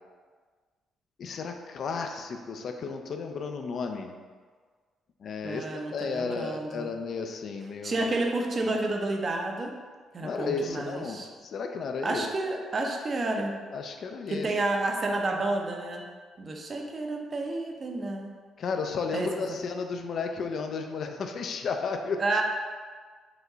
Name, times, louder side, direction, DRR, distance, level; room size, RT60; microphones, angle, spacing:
voice 1, 1.2-4.1 5.2-8.1 8.6-8.8 10.2-12.2 13.7-14.5 18.6-22.2, left 5 dB, 60° left, 4 dB, 0.4 m, -33 dB
voice 2, 5.4-6.9 7.8-9.7 10.1-11.3 12.0-13.5 14.3-16.0 16.4-18.3 19.1-19.4 22.2-22.4, right 2 dB, 40° right, 2 dB, 0.6 m, -30 dB
4.9 x 2.2 x 3.8 m, 1.5 s
cardioid pair, 90°, 0 cm